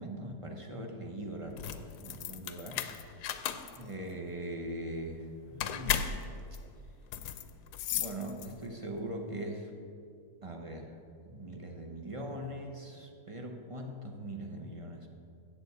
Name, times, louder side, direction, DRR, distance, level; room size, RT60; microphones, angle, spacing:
voice 1, 0.0-2.8 3.8-6.1 7.9-9.7 10.4-11.0 11.2-15.1, right 1 dB, 35° right, 2 dB, 0.5 m, -41 dB
sound 1, 1.4-8.8, left 9 dB, 90° left, 1.2 m, -36 dB
7.8 x 6.8 x 8.0 m, 2.5 s
omnidirectional pair, 1.7 m